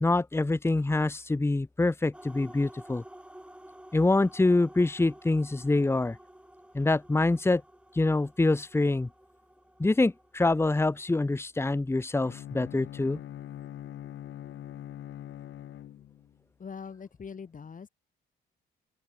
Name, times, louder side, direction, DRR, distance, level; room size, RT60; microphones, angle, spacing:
voice 1, 0.0-3.0 3.9-6.2 6.7-7.6 7.9-9.1 9.8-13.2, left 2 dB, 10° left, 1.2 m, -25 dB
sound 1, 2.1-11.2, right 1 dB, 5° right, 5.6 m, -52 dB
Bowed string instrument, 12.2-16.4, left 11 dB, 75° left, 6.7 m, -43 dB
voice 2, 16.6-17.9, left 6 dB, 40° left, 5.5 m, -42 dB
open air
cardioid pair, 90°, 20 cm